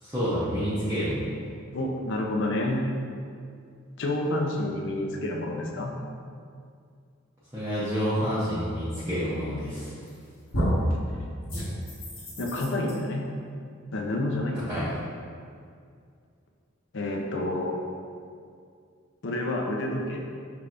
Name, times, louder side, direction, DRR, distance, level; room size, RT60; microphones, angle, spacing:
voice 1, 0.0-1.3 7.5-9.9 14.7-14.8, equal, 15° right, -12 dB, 0.7 m, -28 dB
voice 2, 1.7-2.9 4.0-5.9 12.4-13.2 13.9-14.6 16.9-17.8 19.2-20.2, left 1 dB, 60° left, 0 dB, 0.6 m, -29 dB
sound 1, 9.8-10.2 10.5-10.9 11.5-12.9, equal, 85° left, 1.3 m, -28 dB
5.7 x 3.3 x 2.5 m, 2.3 s
head